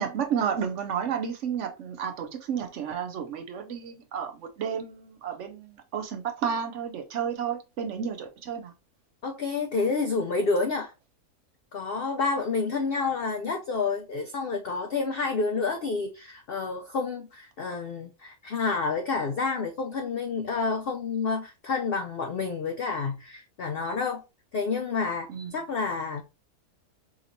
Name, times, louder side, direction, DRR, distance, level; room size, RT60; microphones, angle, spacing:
voice 1, 0.0-8.7 25.3-25.5, right 7 dB, 65° right, 0.8 m, -31 dB
voice 2, 9.2-10.9 11.7-24.2 24.5-26.2, left 4 dB, 70° left, 0.5 m, -29 dB
4.9 x 2.8 x 2.6 m
omnidirectional pair, 1.5 m